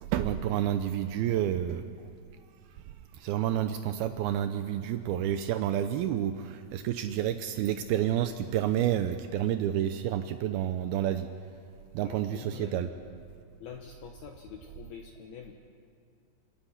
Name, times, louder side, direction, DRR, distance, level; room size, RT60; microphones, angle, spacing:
voice 1, 0.0-1.8 3.1-11.3 11.9-12.9, right 11 dB, 85° right, 8 dB, 2.2 m, -29 dB
voice 2, 12.0-13.0 13.6-15.5, left 7 dB, 65° left, 2 dB, 2.8 m, -46 dB
27.5 x 27.0 x 5.9 m, 2.3 s
omnidirectional pair, 5.4 m